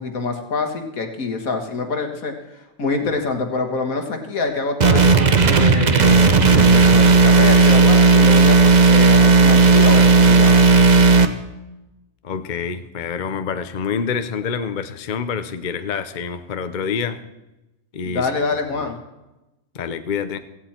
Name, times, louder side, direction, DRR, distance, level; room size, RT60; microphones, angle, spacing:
voice 1, 0.0-10.5 18.1-19.0, left 4 dB, 75° left, 5 dB, 2.1 m, -26 dB
sound 1, 4.8-11.3, right 4 dB, 40° right, 0.8 m, -12 dB
voice 2, 12.2-17.2 17.9-18.3 18.7-18.9 19.7-20.4, left 6 dB, 45° left, 10 dB, 0.7 m, -27 dB
16.5 x 15.5 x 4.4 m, 1.0 s
omnidirectional pair, 1.5 m